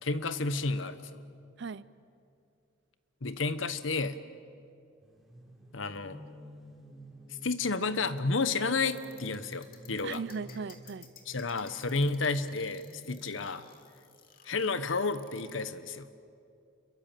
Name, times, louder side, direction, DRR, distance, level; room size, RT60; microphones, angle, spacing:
voice 1, 0.0-1.2 3.2-4.2 5.7-6.2 7.4-10.2 11.3-13.6 14.4-16.1, left 3 dB, 80° left, 12 dB, 1.1 m, -31 dB
sound 1, 5.0-13.3, equal, ahead, 4.6 m, -52 dB
sound 2, 8.7-15.6, left 7 dB, 50° left, 2.6 m, -55 dB
voice 2, 10.0-11.1, right 5 dB, 65° right, 18 dB, 0.6 m, -38 dB
29.0 x 23.0 x 7.6 m, 2.5 s
head